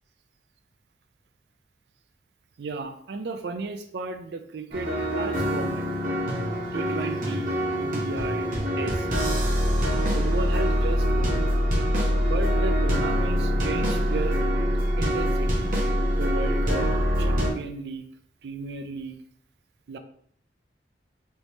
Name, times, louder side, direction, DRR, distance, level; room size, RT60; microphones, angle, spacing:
voice 1, 2.6-5.9 6.7-8.5 8.8-9.2 10.1-11.4 12.2-14.4 15.0-15.7 16.1-16.9 17.2-18.0 18.4-19.2 19.9-20.0, right 3 dB, 70° right, 7 dB, 0.4 m, -34 dB
sound 1, 4.7-17.5, equal, 50° right, 0.8 m, -24 dB
3.4 x 3.1 x 2.7 m, 0.63 s
head